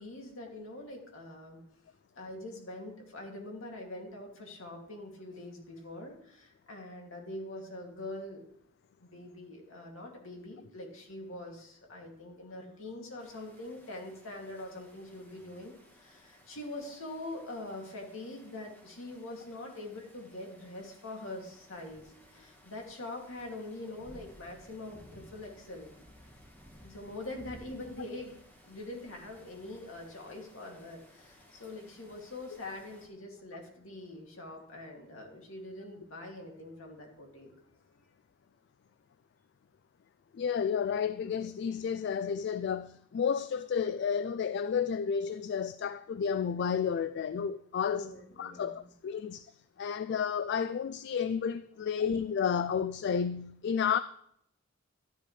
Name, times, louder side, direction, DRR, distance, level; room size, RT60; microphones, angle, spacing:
voice 1, 0.0-1.6 2.2-8.4 9.0-25.9 26.8-28.4 28.6-37.5 37.9-38.1 47.9-48.9, left 2 dB, 70° left, 2.6 m, -44 dB
sound 1, 13.2-33.1, equal, 10° left, 1.5 m, -58 dB
voice 2, 40.3-48.1 48.4-49.5 49.8-54.0, left 7 dB, 55° left, 0.3 m, -31 dB
12.5 x 10.0 x 3.3 m
head